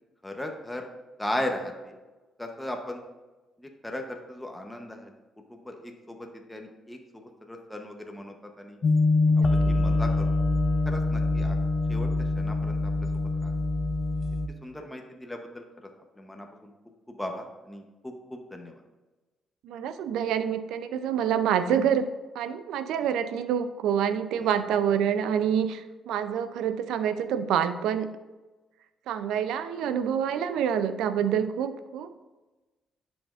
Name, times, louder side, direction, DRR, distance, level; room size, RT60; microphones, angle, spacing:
voice 1, 0.2-0.9 1.2-2.0 2.4-3.0 3.6-5.1 5.5-8.8 9.5-10.3 10.9-11.6 11.9-12.1 12.4-12.9 13.4-13.5 14.6-15.6 16.2-16.7 17.1-18.8 24.4-24.6, left 1 dB, 10° left, 2 dB, 0.8 m, -37 dB
sound 1, 8.8-14.5, left 2 dB, 45° left, 0.4 m, -24 dB
voice 2, 9.3-9.7 19.6-22.1 22.3-28.2 29.1-32.2, right 8 dB, 85° right, 11 dB, 0.4 m, -27 dB
11.0 x 5.1 x 2.4 m, 1.2 s
cardioid pair, 90°, 0 cm